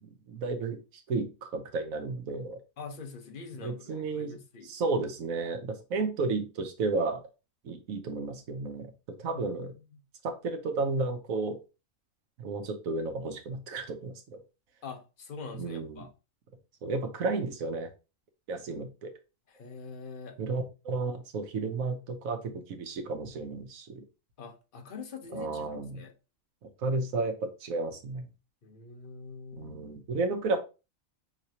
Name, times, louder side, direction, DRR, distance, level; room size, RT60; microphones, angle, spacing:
voice 1, 0.0-2.6 3.6-4.4 4.6-7.2 7.6-8.9 9.2-9.7 10.2-11.6 12.4-14.4 15.5-16.0 16.8-17.9 18.5-19.1 20.4-24.0 25.3-26.0 26.8-28.3 29.5-30.6, right 3 dB, 90° right, 1.3 m, -32 dB
voice 2, 2.8-4.7 9.2-9.4 9.9-10.0 14.8-16.1 19.5-20.4 24.4-25.7 25.9-26.1 28.6-29.8, left 4 dB, 45° left, 0.9 m, -44 dB
5.7 x 3.1 x 2.8 m
omnidirectional pair, 1.4 m